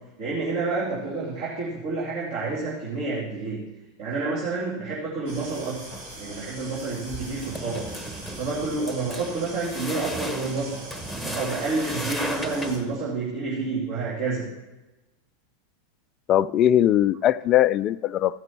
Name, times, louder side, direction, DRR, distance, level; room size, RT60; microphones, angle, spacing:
voice 1, 0.2-3.6 4.0-5.8 6.2-7.9 8.4-10.8 11.2-14.4, right 3 dB, 60° right, -6 dB, 2.7 m, -29 dB
sound 1, 5.3-12.8, right 2 dB, 75° right, 4.3 m, -42 dB
sound 2, 5.9-6.3 7.1-13.1, equal, ahead, 1.0 m, -36 dB
voice 2, 16.3-18.4, left 11 dB, 40° left, 16 dB, 0.3 m, -20 dB
14.5 x 6.0 x 4.5 m, 1.1 s
hypercardioid pair, 95°, 0 cm